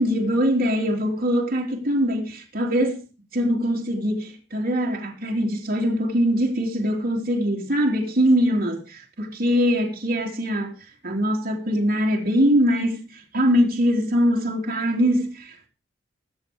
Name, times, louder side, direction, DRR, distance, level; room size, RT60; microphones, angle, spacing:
voice 1, 0.0-3.0 3.3-10.7 11.0-15.7, equal, 50° right, 3.3 m, -22 dB
23.5 x 7.8 x 3.6 m
head